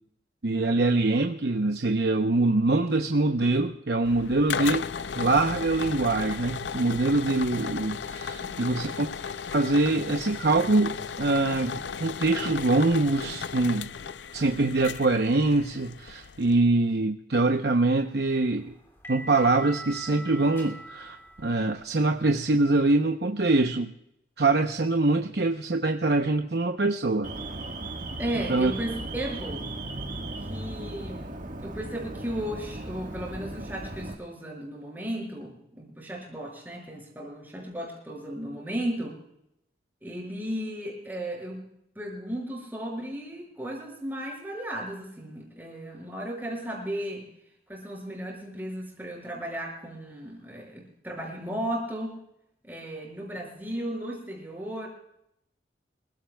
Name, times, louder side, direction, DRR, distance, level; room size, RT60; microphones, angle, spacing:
voice 1, 0.4-4.9 5.2-9.1 9.5-13.9 14.3-18.7 19.1-23.9 24.4-27.3 28.5-28.7, right 2 dB, 65° right, 5 dB, 0.8 m, -24 dB
sound 1, 4.0-16.5, left 6 dB, 80° left, 0.5 m, -35 dB
sound 2, 17.9-22.8, right 1 dB, 15° left, 2.6 m, -43 dB
Alarm, 27.2-34.1, right 2 dB, 45° right, 1.6 m, -37 dB
voice 2, 28.2-29.7 30.5-39.2 40.0-41.6 42.0-47.3 47.7-52.2 52.6-54.9, right 1 dB, 10° right, -1 dB, 5.7 m, -35 dB
26.5 x 16.0 x 2.3 m, 0.78 s
head